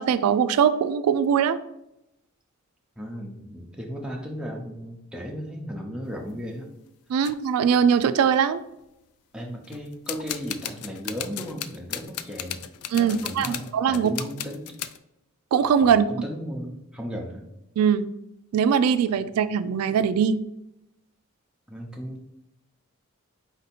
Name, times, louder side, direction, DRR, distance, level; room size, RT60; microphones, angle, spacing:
voice 1, 0.0-1.6 7.1-8.6 12.9-14.1 15.5-16.1 17.8-18.1 18.5-20.4, right 7 dB, 90° right, 15 dB, 0.3 m, -21 dB
voice 2, 3.0-6.7 7.1-7.3 9.3-12.6 12.9-14.7 15.8-17.4 21.7-22.2, equal, 5° right, 0 dB, 0.6 m, -35 dB
sound 1, 6.1-6.4 7.2-7.4 8.1-8.2 8.3-8.8 9.6-15.0, left 11 dB, 90° left, 0.3 m, -36 dB
4.4 x 2.7 x 4.1 m, 0.86 s
head